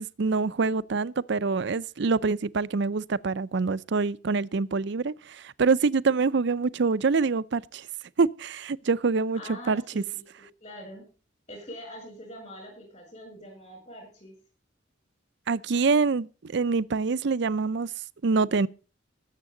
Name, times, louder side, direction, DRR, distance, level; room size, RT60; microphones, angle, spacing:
voice 1, 0.0-7.9 8.2-9.4 9.7-10.0 15.5-17.9 18.2-18.7, right 4 dB, 65° right, 0.5 m, -25 dB
voice 2, 9.3-11.1 11.5-14.4, equal, 35° left, 7.7 m, -44 dB
20.0 x 7.4 x 3.8 m
head